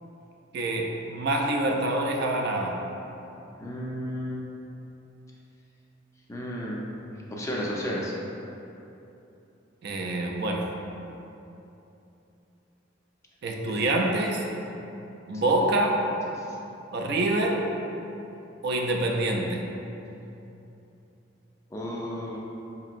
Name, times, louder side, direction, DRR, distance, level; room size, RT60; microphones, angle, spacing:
voice 1, 0.5-2.7 9.8-10.7 13.4-14.4 15.3-16.1 16.9-17.6 18.6-19.6, right 2 dB, 55° right, 0 dB, 0.4 m, -26 dB
voice 2, 3.6-4.4 6.3-7.0 7.3-8.1 13.7-13.9 21.7-22.4, equal, 15° left, -4 dB, 0.4 m, -33 dB
5.1 x 2.8 x 2.5 m, 2.9 s
head